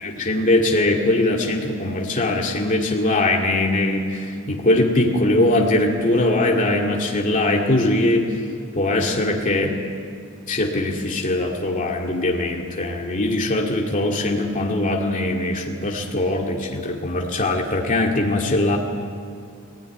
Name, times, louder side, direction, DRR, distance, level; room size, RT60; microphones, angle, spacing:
voice 1, 0.0-8.3 8.8-9.8 10.5-18.8, left 2 dB, 35° left, -1 dB, 2.2 m, -21 dB
20.0 x 17.0 x 9.9 m, 2.4 s
head